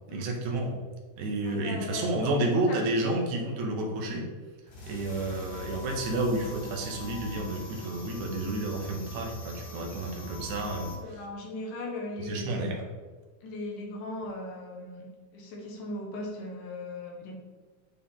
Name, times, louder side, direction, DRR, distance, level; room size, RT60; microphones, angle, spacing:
voice 1, 0.1-0.7 1.2-4.3 4.9-10.9 12.2-12.8, right 2 dB, 70° right, 1 dB, 2.2 m, -30 dB
voice 2, 1.4-3.1 10.7-12.7 13.4-17.3, left 2 dB, 80° left, -1 dB, 2.7 m, -38 dB
sound 1, 4.7-11.0, left 2 dB, 55° left, 2.4 m, -42 dB
8.2 x 4.3 x 3.7 m, 1.3 s
omnidirectional pair, 3.6 m